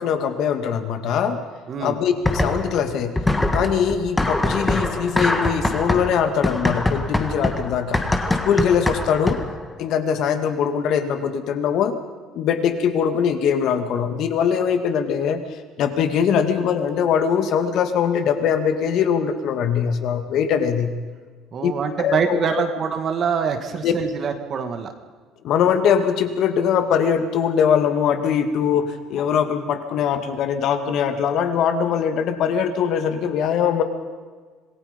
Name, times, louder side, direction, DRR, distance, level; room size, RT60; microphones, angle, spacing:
voice 1, 0.0-1.4 1.8-3.1 3.5-8.0 8.4-9.4 9.8-12.0 12.3-20.9 21.6-21.7 22.0-22.4 23.8-23.9 25.4-33.8, left 7 dB, 55° left, 8 dB, 2.1 m, -21 dB
sound 1, 2.2-2.8 3.2-9.6, left 2 dB, 10° left, 1.7 m, -23 dB
voice 2, 21.5-24.9, right 6 dB, 35° right, 7 dB, 2.2 m, -25 dB
26.5 x 20.5 x 5.4 m, 1.5 s
cardioid pair, 155°, 0 cm